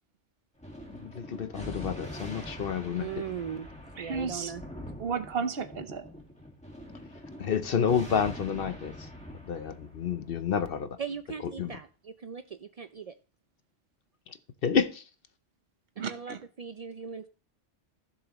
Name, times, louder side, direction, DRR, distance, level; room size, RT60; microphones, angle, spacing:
Thunder, 0.6-11.5, left 1 dB, 5° left, 1.8 m, -44 dB
voice 1, 1.0-3.1 7.4-9.1 9.5-10.9 11.6-11.7 14.3-14.4 14.6-15.0, left 7 dB, 55° left, 0.8 m, -29 dB
voice 2, 2.9-3.7 4.0-4.6 11.0-13.2 16.0-17.3, right 7 dB, 75° right, 0.3 m, -39 dB
voice 3, 4.0-4.5 5.0-6.0 16.0-16.4, right 5 dB, 55° right, 1.0 m, -33 dB
15.5 x 7.0 x 3.0 m
omnidirectional pair, 1.3 m